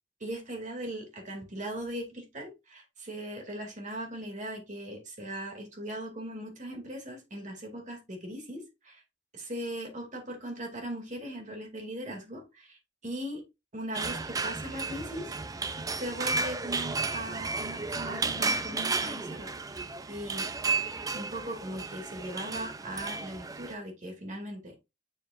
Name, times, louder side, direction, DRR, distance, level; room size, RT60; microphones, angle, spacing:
voice 1, 0.2-9.0 9.3-13.4 13.7-15.3 15.9-19.8 20.1-20.5 21.1-24.8, right 1 dB, 40° right, 2 dB, 2.5 m, -39 dB
sound 1, 13.9-23.7, right 4 dB, 20° right, 0.5 m, -33 dB
7.1 x 7.0 x 2.5 m, 0.24 s
head